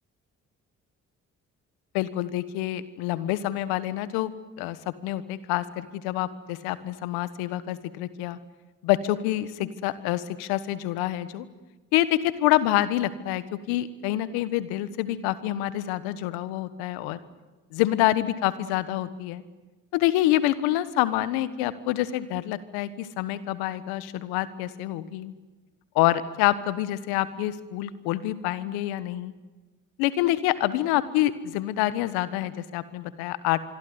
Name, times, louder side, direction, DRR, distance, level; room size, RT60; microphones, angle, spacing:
voice 1, 1.9-4.3 4.6-4.8 5.0-8.4 8.8-11.4 11.9-17.2 17.7-19.4 19.9-25.3 25.9-29.3 30.0-33.6, left 14 dB, 85° left, 15 dB, 1.4 m, -27 dB
25.5 x 23.0 x 9.7 m, 1.2 s
hypercardioid pair, 45°, 37 cm